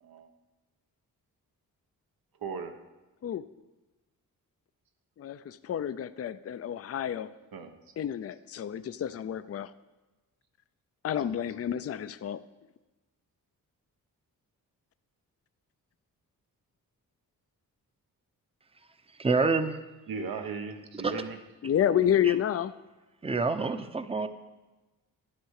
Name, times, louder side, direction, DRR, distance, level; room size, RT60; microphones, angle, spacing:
voice 1, 2.4-2.8 7.5-7.7 20.1-21.4, right 5 dB, 80° right, 6 dB, 1.3 m, -37 dB
voice 2, 5.2-7.3 8.0-9.7 11.0-12.4 21.6-22.7, left 10 dB, 40° left, 13 dB, 0.5 m, -29 dB
voice 3, 19.2-19.8 20.9-21.1 22.2-22.3 23.2-24.3, right 4 dB, 15° right, 10 dB, 0.8 m, -27 dB
12.0 x 9.7 x 6.5 m, 1.1 s
cardioid pair, 100°, 35 cm